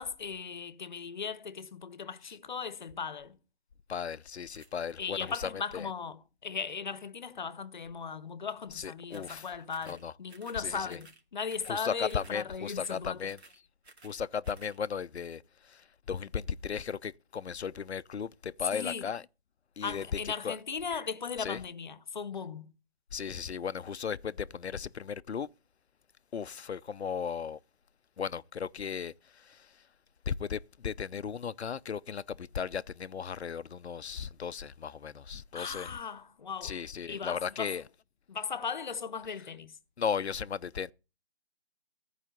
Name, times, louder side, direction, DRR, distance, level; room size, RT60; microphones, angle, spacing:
voice 1, 0.0-3.4 5.0-13.3 18.7-19.1 19.8-22.7 35.5-36.8 37.1-37.8 38.3-39.8, left 6 dB, 45° left, 1.0 m, -37 dB
voice 2, 3.9-5.9 8.8-9.5 9.9-10.1 10.6-11.0 11.7-13.4 14.0-19.2 19.8-20.6 21.4-21.6 23.1-25.5 26.3-27.6 28.2-29.8 30.3-36.0 36.6-37.8 40.0-40.9, left 7 dB, 75° left, 0.7 m, -36 dB
sound 1, 4.5-4.7 9.1-9.4 9.7-10.0 10.3-10.6 10.9-11.2 11.5-11.8 12.1-12.4 12.7-13.0 13.2-14.2 14.4-14.8, right 3 dB, 75° right, 2.5 m, -56 dB
14.0 x 5.0 x 8.0 m
figure-of-eight pair, 160°, 33 cm